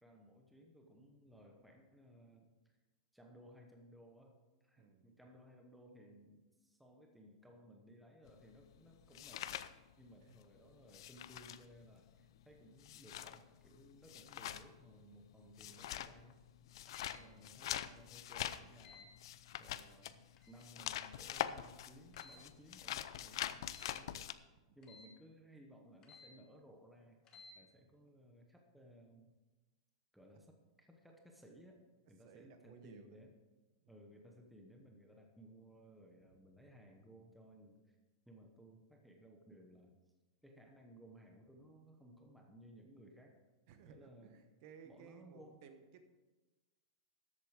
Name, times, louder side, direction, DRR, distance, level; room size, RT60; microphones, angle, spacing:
voice 1, 0.0-2.8 3.1-16.5 17.1-19.2 19.6-24.3 24.7-27.2 27.5-29.3 30.1-31.8 32.1-33.3 33.9-38.0 38.3-40.0 40.4-43.4 43.9-44.4 44.8-45.6, equal, ahead, 1 dB, 0.9 m, -60 dB
voice 2, 4.8-5.2 10.2-10.4 17.0-17.5 24.6-24.8 32.2-33.2 33.8-34.2 36.2-36.4 43.7-46.2, right 7 dB, 40° right, 8 dB, 1.1 m, -60 dB
sound 1, 8.3-10.4 10.7-24.3, left 12 dB, 60° left, 0.5 m, -44 dB
sound 2, 16.9-17.2 18.8-19.1 20.4-20.7 22.1-22.5 23.7-24.0 24.8-25.1 26.0-26.3 27.2-27.6, left 3 dB, 20° left, 1.3 m, -58 dB
13.5 x 8.2 x 4.9 m, 1.2 s
supercardioid pair, 170°, 3 cm